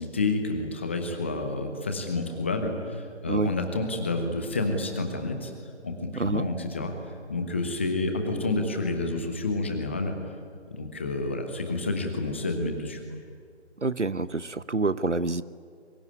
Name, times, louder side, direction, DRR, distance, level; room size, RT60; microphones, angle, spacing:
voice 1, 0.0-5.5 5.8-6.9 7.3-10.1 10.7-13.0, left 2 dB, 10° left, 5 dB, 1.1 m, -29 dB
voice 2, 6.2-6.5 13.8-15.4, right 3 dB, 85° right, 16 dB, 1.1 m, -27 dB
22.5 x 22.0 x 9.7 m, 2.1 s
figure-of-eight pair, 160°, 35 cm